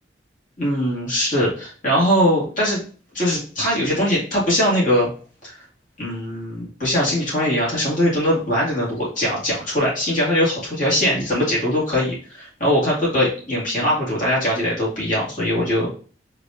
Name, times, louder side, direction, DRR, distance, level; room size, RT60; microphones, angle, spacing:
voice 1, 0.6-2.8 3.1-5.1 5.4-5.5 6.0-15.9, equal, 45° left, -6 dB, 2.1 m, -21 dB
4.9 x 3.4 x 2.5 m, 0.40 s
head